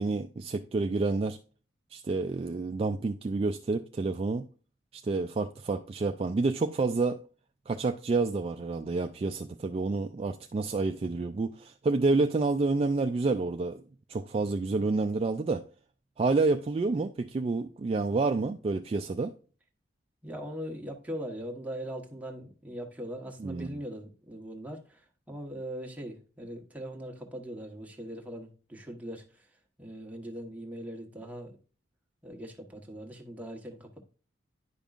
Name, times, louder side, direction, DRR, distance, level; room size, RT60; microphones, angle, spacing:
voice 1, 0.0-1.4 1.9-4.5 4.9-7.2 7.7-13.8 14.1-15.6 16.2-19.3 23.4-23.8, right 3 dB, 30° right, 0.3 m, -29 dB
voice 2, 20.2-29.5 29.8-31.5 32.2-34.0, equal, 10° right, 1.1 m, -40 dB
10.0 x 5.3 x 2.4 m
head